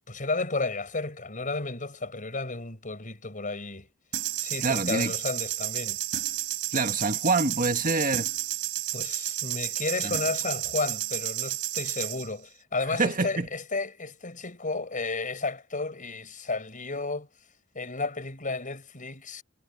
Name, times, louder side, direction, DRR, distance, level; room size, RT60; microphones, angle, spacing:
voice 1, 0.1-3.9 4.4-6.0 8.9-17.3 17.7-19.4, left 3 dB, 40° left, 6.5 m, -32 dB
sound 1, 4.1-12.3, right 14 dB, 65° right, 5.2 m, -31 dB
voice 2, 4.6-5.1 6.7-8.3 10.0-10.1 13.0-13.5, right 3 dB, 40° right, 1.9 m, -26 dB
head